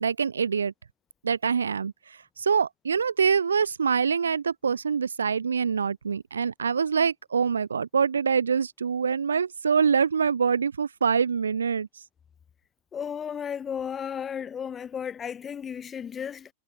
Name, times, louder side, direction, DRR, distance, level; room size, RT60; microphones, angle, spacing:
voice 1, 0.0-0.7 1.2-1.9 2.4-11.9, right 6 dB, 70° right, 0.4 m, -25 dB
voice 2, 12.9-16.5, left 7 dB, 20° left, 1.4 m, -34 dB
figure-of-eight pair, 90°, 0 cm